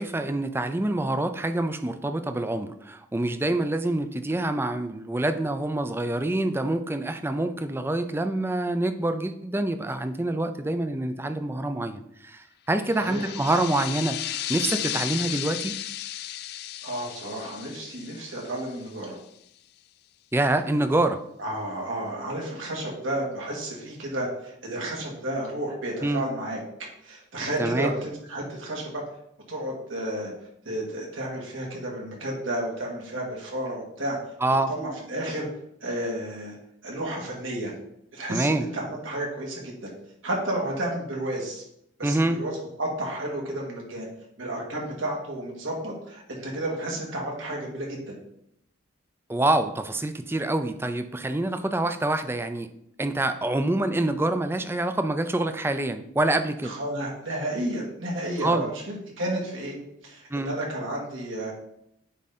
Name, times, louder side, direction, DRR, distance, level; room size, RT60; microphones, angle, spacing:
voice 1, 0.0-15.7 20.3-21.2 26.0-26.2 27.6-27.9 34.4-34.7 38.3-38.7 42.0-42.4 49.3-52.7 53.0-56.7 58.4-58.7 60.3-60.5, right 2 dB, 10° right, 9 dB, 0.4 m, -26 dB
sound 1, 12.9-19.2, left 13 dB, 55° left, 0.3 m, -34 dB
voice 2, 13.0-13.3 16.8-19.2 21.4-26.6 27.0-29.0 29.5-30.3 30.6-34.2 34.7-35.5 35.8-36.5 36.8-37.7 38.1-39.9 40.2-41.6 42.0-44.1 44.4-48.1 56.6-59.8 60.0-61.5, right 1 dB, 80° right, -2 dB, 2.3 m, -32 dB
9.1 x 3.8 x 4.2 m, 0.73 s
head